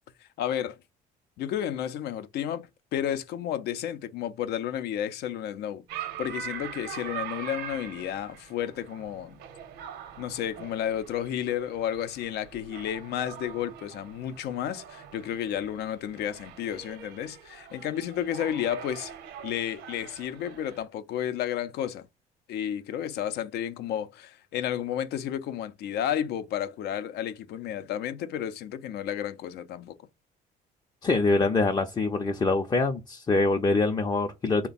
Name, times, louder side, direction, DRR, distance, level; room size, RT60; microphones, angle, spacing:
voice 1, 0.4-0.8 1.4-9.4 10.2-19.1 19.4-22.1 22.5-30.0, left 10 dB, 75° left, 0.5 m, -32 dB
sound 1, 5.9-20.9, right 9 dB, 85° right, 0.8 m, -43 dB
voice 2, 31.0-34.7, left 3 dB, 25° left, 0.5 m, -24 dB
3.5 x 2.2 x 4.0 m
cardioid pair, 110°, 17 cm